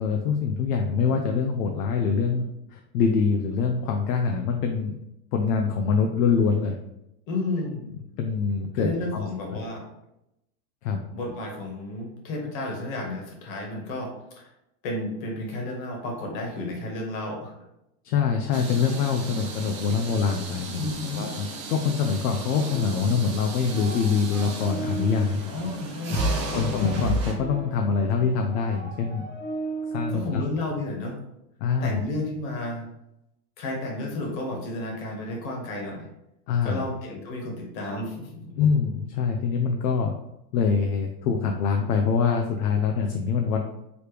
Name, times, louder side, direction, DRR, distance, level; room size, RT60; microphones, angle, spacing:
voice 1, 0.0-5.0 5.3-6.8 7.8-7.9 8.2-9.2 10.8-11.0 18.0-20.9 21.2-25.4 26.5-29.2 29.9-30.4 31.6-32.0 36.5-36.8 38.6-40.1 40.5-43.6, left 5 dB, 70° left, 3 dB, 0.7 m, -24 dB
voice 2, 7.3-7.8 8.7-9.8 11.1-14.5 14.8-17.5 20.8-21.2 25.5-26.7 30.1-31.2 31.8-32.9 33.6-36.1 36.6-38.5, left 2 dB, 55° left, 1 dB, 1.7 m, -32 dB
sound 1, 18.5-27.3, right 2 dB, 25° right, 0.3 m, -37 dB
sound 2, 22.6-23.4 23.6-25.3 26.1-30.2, right 1 dB, 20° left, 1.0 m, -32 dB
5.0 x 3.2 x 3.3 m, 0.85 s
supercardioid pair, 145°, 49 cm